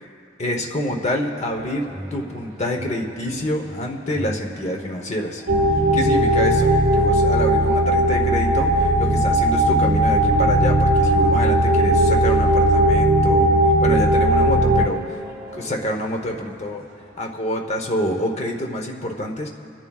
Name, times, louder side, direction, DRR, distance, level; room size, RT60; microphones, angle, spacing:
voice 1, 0.4-5.4 5.9-6.7 6.9-13.5 13.8-15.2 15.5-16.8 17.2-19.5, left 1 dB, 35° left, 2 dB, 1.0 m, -27 dB
sound 1, 1.5-17.3, equal, 15° right, 2.3 m, -40 dB
sound 2, 5.5-14.9, right 1 dB, 85° right, 0.8 m, -17 dB
29.0 x 11.0 x 2.4 m, 2.4 s
head